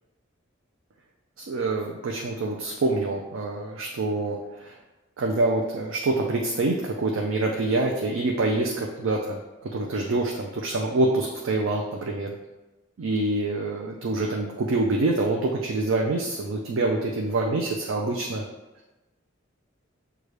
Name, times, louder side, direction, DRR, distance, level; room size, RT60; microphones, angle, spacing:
voice 1, 1.4-4.8 5.2-9.4 9.7-12.3 13.0-18.4, right 2 dB, 80° right, 0 dB, 0.5 m, -26 dB
6.5 x 2.3 x 3.2 m, 1.1 s
head